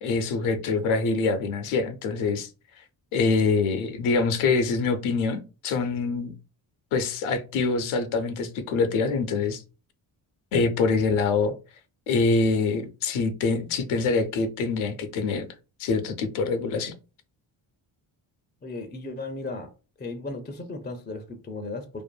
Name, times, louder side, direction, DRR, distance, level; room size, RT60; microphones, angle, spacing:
voice 1, 0.0-2.5 3.1-6.3 6.9-9.6 10.5-11.5 12.1-15.5 15.8-16.9, left 4 dB, 75° left, 0.6 m, -25 dB
voice 2, 18.6-19.7 20.0-22.0, left 2 dB, 20° left, 0.4 m, -35 dB
2.5 x 2.5 x 2.2 m
supercardioid pair, 60°, 49 cm